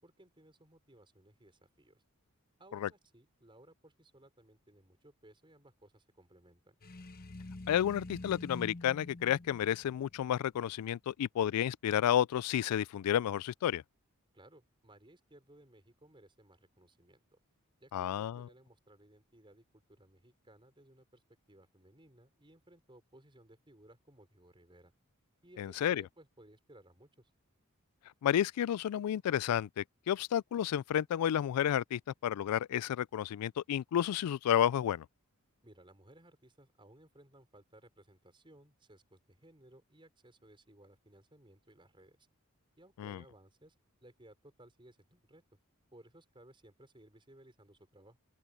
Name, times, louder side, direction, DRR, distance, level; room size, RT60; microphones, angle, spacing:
voice 1, 0.0-2.0 2.6-6.8 14.3-17.4 17.8-21.2 21.5-24.9 25.4-27.3 35.6-42.3 42.8-43.7 44.0-45.4 45.9-48.2, right 1 dB, 20° right, 5.7 m, -60 dB
sound 1, 6.8-10.7, left 2 dB, 40° left, 0.9 m, -47 dB
voice 2, 7.7-13.8 17.9-18.5 25.6-26.0 28.2-35.1 43.0-43.2, left 10 dB, 90° left, 0.3 m, -31 dB
open air
head